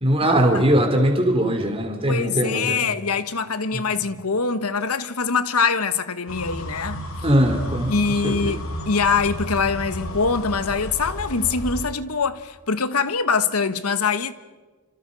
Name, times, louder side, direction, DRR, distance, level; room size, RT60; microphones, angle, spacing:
voice 1, 0.0-2.9 3.7-3.8 7.2-7.9 8.2-8.5, right 1 dB, 25° right, 3.2 m, -20 dB
voice 2, 2.1-7.0 7.9-14.3, left 5 dB, 90° left, 1.2 m, -23 dB
sound 1, 6.3-11.9, equal, 65° left, 2.8 m, -32 dB
27.5 x 26.5 x 5.3 m
head